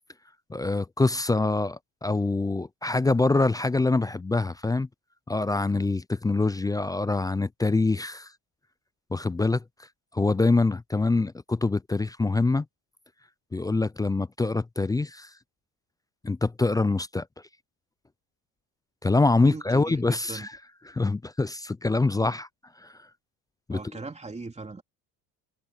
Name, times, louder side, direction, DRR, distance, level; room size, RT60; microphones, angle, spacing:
voice 1, 0.5-4.9 5.3-8.3 9.1-9.6 10.1-12.7 13.5-15.3 16.2-17.3 19.0-20.6 20.9-22.5 22.8-23.0 23.7-23.8, left 3 dB, 10° left, 0.4 m, -25 dB
voice 2, 19.4-20.0 20.3-20.5 22.1-22.4 23.7-24.8, right 3 dB, 15° right, 3.0 m, -39 dB
supercardioid pair, 95°, 38 cm